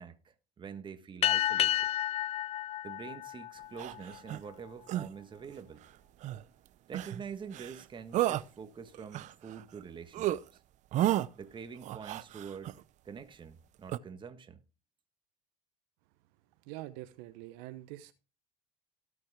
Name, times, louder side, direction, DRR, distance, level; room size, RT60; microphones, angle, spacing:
voice 1, 0.0-1.9 2.8-5.8 6.9-10.6 11.3-12.8 13.0-14.6, right 6 dB, 30° right, 1.5 m, -46 dB
sound 1, 1.2-4.2, left 12 dB, 40° left, 0.4 m, -31 dB
sound 2, 3.8-4.4 4.9-5.1 6.2-6.4 6.9-7.2 7.5-7.8 8.1-8.5 8.9-9.8 10.1-10.4 10.9-11.3 11.8-12.8 13.9-14.0, right 13 dB, 50° right, 0.6 m, -32 dB
voice 2, 16.7-18.1, right 16 dB, 75° right, 0.9 m, -45 dB
18.0 x 6.0 x 3.6 m
supercardioid pair, 100°, 16 cm